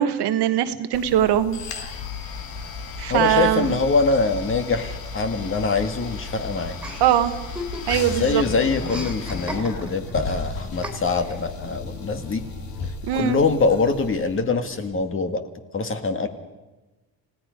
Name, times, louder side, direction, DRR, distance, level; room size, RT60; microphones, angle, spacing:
voice 1, 0.0-1.6 3.0-3.8 7.0-7.3 7.9-8.4 13.1-13.4, right 10 dB, 80° right, 9 dB, 1.4 m, -21 dB
sound 1, 0.9-14.4, left 4 dB, 60° left, 2.3 m, -35 dB
voice 2, 3.1-6.8 8.1-12.4 13.1-15.4 15.7-16.3, left 4 dB, 30° left, 7 dB, 1.7 m, -23 dB
Chuckle chortle, 6.8-8.2 8.4-10.1 10.8-11.4, equal, ahead, 3.4 m, -36 dB
Car, 7.8-14.9, left 3 dB, 80° left, 7.4 m, -37 dB
29.5 x 17.5 x 5.2 m, 1.1 s
cardioid pair, 145°, 40 cm